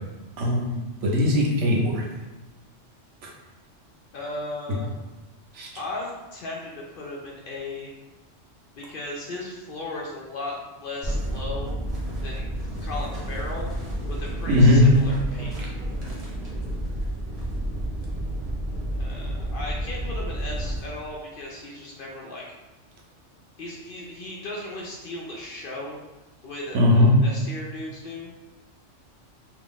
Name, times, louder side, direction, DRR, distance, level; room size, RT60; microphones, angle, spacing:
voice 1, 0.4-2.0 5.5-5.7 14.5-14.9 26.7-27.1, left 1 dB, 75° right, -3 dB, 1.1 m, -19 dB
voice 2, 4.1-4.9 5.7-7.9 8.7-11.8 12.2-13.7 14.1-15.7 19.0-22.4 23.6-26.0 26.4-28.3, left 2 dB, 60° left, -3 dB, 0.6 m, -36 dB
sound 1, 11.0-20.8, right 1 dB, 35° right, 0.8 m, -30 dB
2.9 x 2.4 x 3.6 m, 1.2 s
omnidirectional pair, 1.2 m